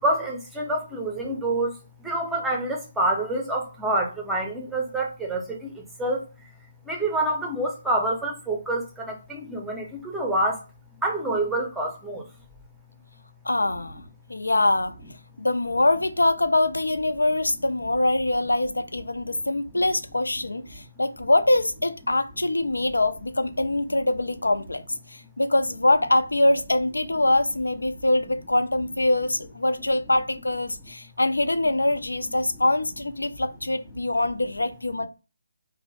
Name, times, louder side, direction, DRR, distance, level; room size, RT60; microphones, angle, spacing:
voice 1, 0.0-6.5 6.9-10.6 11.0-12.3 19.3-19.4, right 1 dB, 5° right, 0.6 m, -27 dB
voice 2, 13.4-14.0 14.3-14.9 15.4-35.1, left 2 dB, 85° left, 0.4 m, -24 dB
2.6 x 2.0 x 3.0 m
figure-of-eight pair, 150°, 0 cm